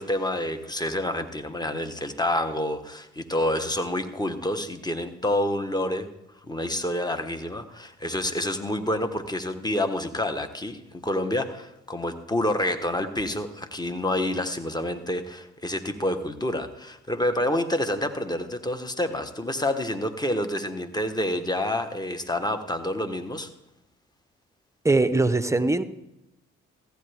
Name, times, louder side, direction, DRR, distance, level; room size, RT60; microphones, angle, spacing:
voice 1, 0.0-6.1 6.4-23.5, left 1 dB, 10° left, 8 dB, 1.3 m, -28 dB
voice 2, 24.8-25.8, right 2 dB, 10° right, 12 dB, 0.7 m, -21 dB
14.5 x 9.1 x 3.5 m, 0.89 s
hypercardioid pair, 45°, 32 cm